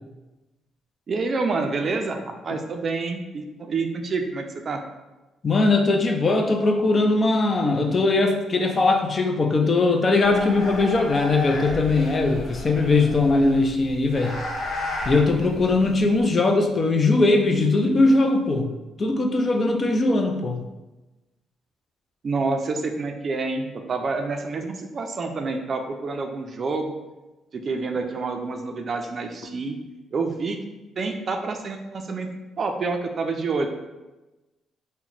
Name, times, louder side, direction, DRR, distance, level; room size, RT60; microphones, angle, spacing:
voice 1, 1.1-4.8 22.2-26.9 27.5-29.8 30.1-30.6 31.0-32.3 32.6-33.7, right 3 dB, 45° right, 5 dB, 0.4 m, -28 dB
voice 2, 5.4-14.4 15.1-18.7 19.0-20.6, left 3 dB, 40° left, 3 dB, 0.4 m, -20 dB
sound 1, 10.2-16.2, left 2 dB, 75° left, 1.1 m, -33 dB
2.8 x 2.1 x 3.9 m, 1.1 s
cardioid pair, 90°, 0 cm